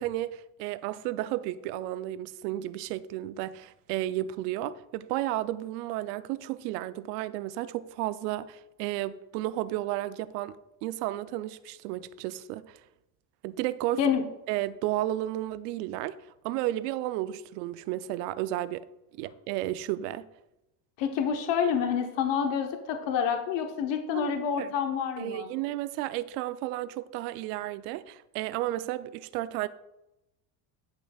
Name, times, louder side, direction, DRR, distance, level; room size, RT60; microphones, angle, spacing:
voice 1, 0.0-10.6 10.8-12.8 13.4-14.0 14.5-16.2 16.4-18.9 19.2-20.3 24.1-24.3 24.6-24.7 25.2-29.7, right 15 dB, 80° right, 0.6 m, -33 dB
voice 2, 21.0-25.5, left 7 dB, 65° left, 1.1 m, -28 dB
16.0 x 5.4 x 2.3 m
hypercardioid pair, 75°, 47 cm